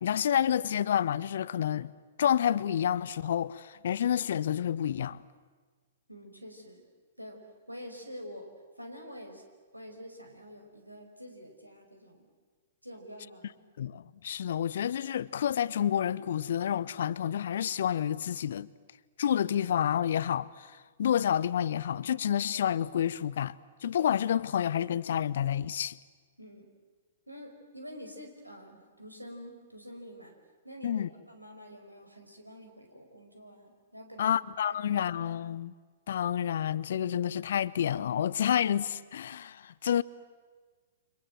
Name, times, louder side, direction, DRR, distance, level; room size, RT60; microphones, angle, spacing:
voice 1, 0.0-1.9 2.2-5.2 13.8-18.7 19.2-23.5 23.8-26.0 30.8-31.1 34.2-35.7 36.1-40.0, left 9 dB, 55° left, 0.8 m, -29 dB
voice 2, 6.1-6.8 7.2-7.4 7.7-8.5 8.8-9.4 9.7-12.3 12.8-13.5 26.4-26.7 27.3-30.3 30.6-34.4 34.7-35.1, equal, 90° right, 5.2 m, -47 dB
29.5 x 25.5 x 7.8 m
figure-of-eight pair, 110°, 0 cm